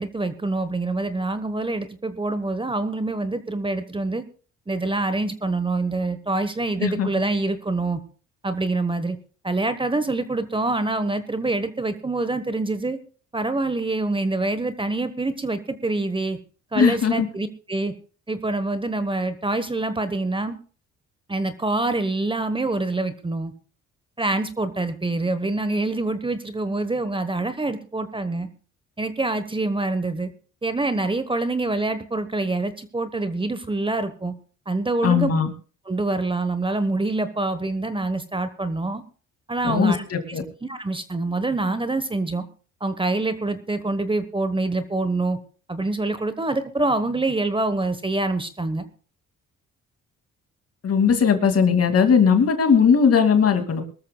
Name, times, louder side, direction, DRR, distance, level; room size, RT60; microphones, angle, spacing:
voice 1, 0.0-4.2 4.7-8.0 8.4-9.2 9.4-13.0 13.3-16.4 16.7-17.9 18.3-20.5 21.3-23.5 24.2-28.5 29.0-30.3 30.6-34.3 34.7-35.3 35.9-39.0 39.5-42.4 42.8-45.4 45.7-48.8, right 2 dB, 15° right, 11 dB, 1.2 m, -25 dB
voice 2, 16.8-17.3 35.0-35.5 39.6-40.4 50.8-53.8, left 6 dB, 50° left, 6 dB, 2.5 m, -18 dB
23.0 x 13.5 x 2.3 m, 0.40 s
cardioid pair, 90°, 30 cm